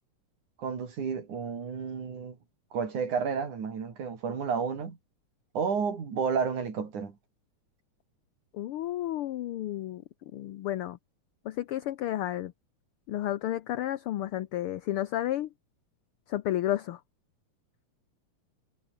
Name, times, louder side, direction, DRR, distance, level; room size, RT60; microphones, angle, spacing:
voice 1, 0.6-2.4 2.7-5.0 5.6-7.2, right 6 dB, 85° right, 5.2 m, -31 dB
voice 2, 8.5-10.0 10.3-11.0 11.4-12.5 13.1-15.5 16.3-17.0, left 13 dB, 70° left, 1.4 m, -31 dB
omnidirectional pair, 3.4 m